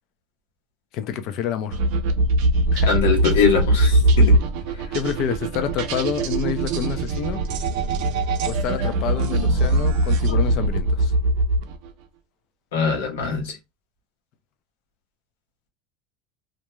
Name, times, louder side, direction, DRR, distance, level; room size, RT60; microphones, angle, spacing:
voice 1, 0.9-1.8 2.7-2.9 4.9-7.4 8.4-11.1, left 8 dB, 55° left, 0.6 m, -28 dB
sound 1, 1.7-11.9, right 2 dB, 70° right, 0.5 m, -21 dB
voice 2, 2.9-4.4 8.8-8.9 9.2-9.7 10.3-10.4 12.7-13.6, left 5 dB, 90° left, 1.0 m, -23 dB
2.5 x 2.1 x 3.0 m
supercardioid pair, 115°, 0 cm